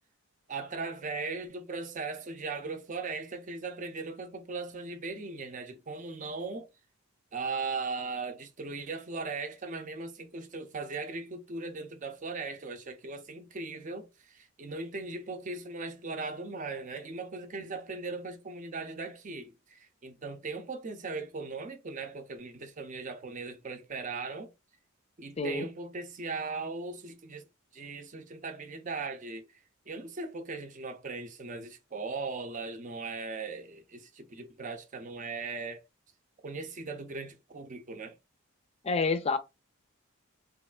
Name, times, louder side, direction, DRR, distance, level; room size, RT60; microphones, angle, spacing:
voice 1, 0.5-6.7 7.3-24.5 25.2-27.5 27.7-29.4 29.9-35.8 36.4-38.2, right 3 dB, 35° right, 0.5 m, -38 dB
voice 2, 25.4-25.7 38.8-39.4, left 4 dB, 30° left, 0.4 m, -28 dB
3.2 x 2.4 x 2.2 m
head